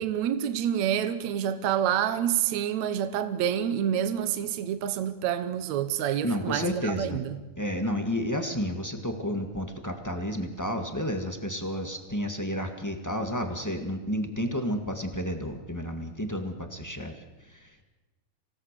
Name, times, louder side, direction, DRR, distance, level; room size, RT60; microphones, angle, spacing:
voice 1, 0.0-7.2, right 9 dB, 70° right, 2.2 m, -28 dB
voice 2, 6.2-7.2 7.6-17.8, equal, 15° left, 0.7 m, -31 dB
26.5 x 17.5 x 6.7 m
omnidirectional pair, 3.6 m